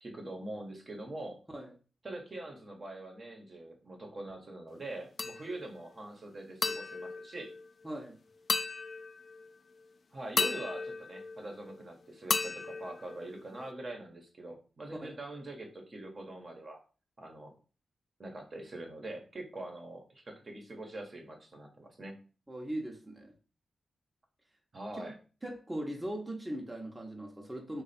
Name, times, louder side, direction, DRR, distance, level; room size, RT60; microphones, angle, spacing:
voice 1, 0.0-1.4 2.0-7.5 10.1-16.8 17.2-17.5 18.2-22.2 24.7-25.1, right 2 dB, 50° right, 1.0 m, -43 dB
sound 1, 5.2-5.8 6.6-8.0 8.5-9.5 10.4-11.8 12.3-13.7, left 4 dB, 55° left, 0.3 m, -35 dB
voice 2, 7.8-8.2 15.0-15.2 22.5-23.3 24.9-25.1 25.4-27.8, right 1 dB, 15° right, 0.8 m, -39 dB
3.3 x 2.4 x 4.1 m
cardioid pair, 55°, 0 cm